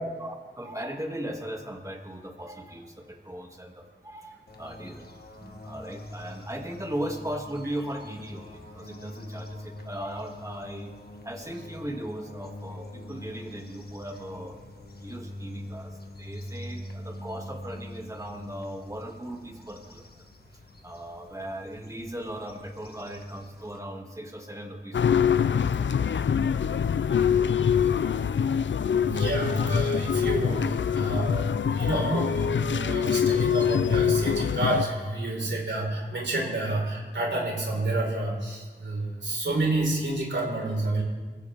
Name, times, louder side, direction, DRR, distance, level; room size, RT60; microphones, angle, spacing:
voice 1, 0.2-5.1 5.6-10.9 11.2-14.6 15.0-20.1 20.8-25.9 31.9-32.4 35.4-35.5 36.1-36.2, right 1 dB, 15° right, 2 dB, 2.2 m, -38 dB
sound 1, 4.5-23.8, left 1 dB, 60° left, 1.7 m, -44 dB
sound 2, 24.9-34.8, left 7 dB, 85° left, 0.5 m, -24 dB
voice 2, 28.9-31.4 31.7-41.0, right 2 dB, 85° right, -2 dB, 4.6 m, -29 dB
26.0 x 15.5 x 3.6 m, 1.3 s
wide cardioid pair, 75°, 19 cm